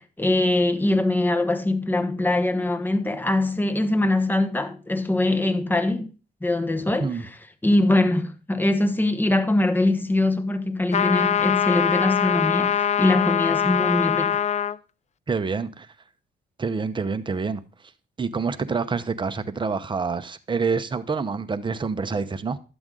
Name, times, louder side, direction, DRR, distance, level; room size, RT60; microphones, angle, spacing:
voice 1, 0.0-6.1 6.4-7.2 7.6-14.4, left 2 dB, 10° left, 1.1 m, -22 dB
sound 1, 10.9-14.8, left 8 dB, 35° left, 0.4 m, -22 dB
voice 2, 15.3-15.9 16.6-17.6 18.2-22.6, right 5 dB, 25° right, 0.8 m, -27 dB
12.0 x 7.9 x 3.8 m
cardioid pair, 90°, 20 cm